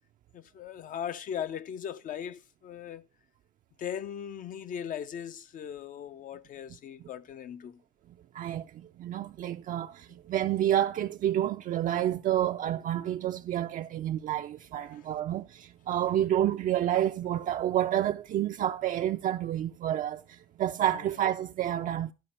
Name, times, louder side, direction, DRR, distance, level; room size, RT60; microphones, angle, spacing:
voice 1, 0.3-3.0 3.8-7.8 14.7-15.1, left 9 dB, 50° left, 0.5 m, -38 dB
voice 2, 8.3-22.1, right 11 dB, 50° right, 0.4 m, -29 dB
12.5 x 5.0 x 4.3 m
cardioid pair, 110°, 17 cm